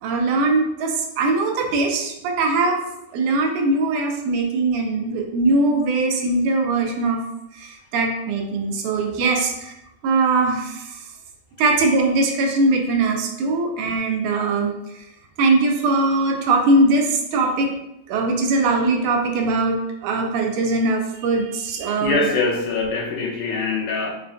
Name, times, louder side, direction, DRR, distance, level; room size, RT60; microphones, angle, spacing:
voice 1, 0.0-2.8 3.1-7.2 7.5-9.7 10.0-11.1 11.6-15.0 15.4-17.7 18.1-22.3, right 3 dB, 80° right, 3 dB, 1.9 m, -21 dB
voice 2, 22.0-24.1, left 3 dB, 90° left, 1 dB, 2.1 m, -23 dB
5.4 x 2.2 x 2.6 m, 0.87 s
omnidirectional pair, 3.6 m